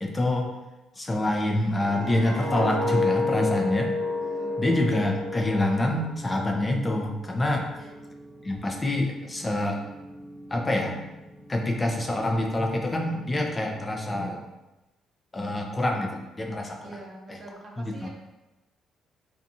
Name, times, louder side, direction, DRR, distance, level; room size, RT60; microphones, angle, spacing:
voice 1, 0.0-0.5 1.0-3.9 4.6-7.9 8.4-9.8 10.5-11.1 11.5-14.4 15.3-16.9 17.3-17.4 17.8-18.1, left 1 dB, 25° left, 1 dB, 0.4 m, -26 dB
sound 1, 1.5-6.5 6.9-7.2, left 3 dB, 85° right, 0.7 m, -30 dB
sound 2, 3.7-14.3, right 1 dB, 35° right, 1.0 m, -47 dB
voice 2, 4.4-4.7 7.7-8.1 16.8-18.1, right 2 dB, 50° right, -1 dB, 0.6 m, -44 dB
2.7 x 2.3 x 2.6 m, 1.0 s
cardioid pair, 80°, 0 cm